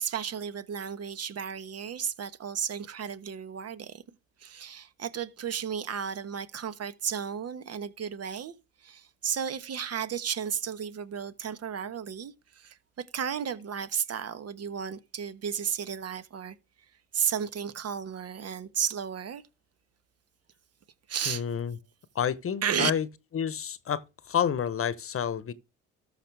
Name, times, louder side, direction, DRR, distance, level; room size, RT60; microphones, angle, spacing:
voice 1, 0.0-4.0 4.4-8.5 8.8-12.8 13.1-16.6 17.1-19.4 21.1-21.4 22.6-22.9, right 8 dB, 45° right, 1.3 m, -33 dB
voice 2, 21.3-21.7 22.1-23.1 23.3-25.5, left 8 dB, 40° left, 1.0 m, -29 dB
13.5 x 5.8 x 3.4 m
supercardioid pair, 75°, 34 cm